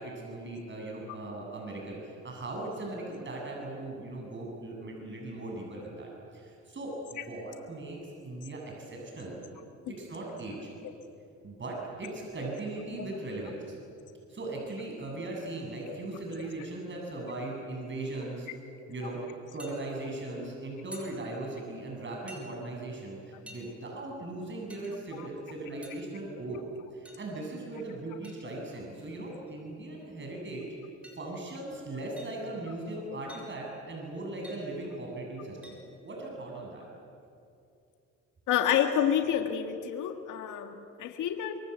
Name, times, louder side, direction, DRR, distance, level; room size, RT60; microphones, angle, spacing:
voice 1, 0.0-8.0 8.2-9.4 9.9-10.7 11.4-13.7 14.3-18.5 18.9-19.2 19.5-26.6 26.9-30.7 31.2-35.8 36.0-36.8, right 2 dB, 40° right, -1 dB, 7.8 m, -38 dB
sound 1, 19.6-19.8 20.9-21.1 22.3-22.5 23.5-23.6 24.7-24.9 25.8-26.0 27.0-27.3 28.2-28.4 29.5-29.6 30.0-30.1 31.0-31.2 32.2-32.4 33.3-33.5 34.4-34.6 35.6-35.8, left 1 dB, 5° right, 7.0 m, -49 dB
voice 2, 38.5-41.6, left 9 dB, 85° left, 6 dB, 1.9 m, -29 dB
26.0 x 23.0 x 8.3 m, 2.6 s
cardioid pair, 90°, 30 cm